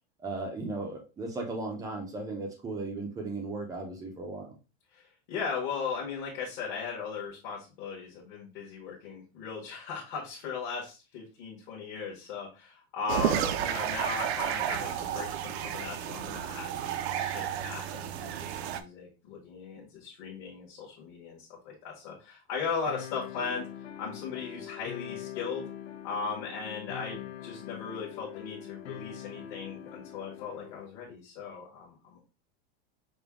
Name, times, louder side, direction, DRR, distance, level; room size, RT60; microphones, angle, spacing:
voice 1, 0.2-4.6, right 3 dB, 10° right, 2 dB, 0.5 m, -36 dB
voice 2, 4.9-23.6 24.0-25.6 26.0-32.2, left 5 dB, 40° left, -3 dB, 1.1 m, -38 dB
sound 1, 13.1-18.8, right 10 dB, 70° right, 0.6 m, -32 dB
sound 2, 22.9-30.9, left 10 dB, 80° left, 0.8 m, -43 dB
5.2 x 2.2 x 3.5 m, 0.31 s
supercardioid pair, 175°, 33 cm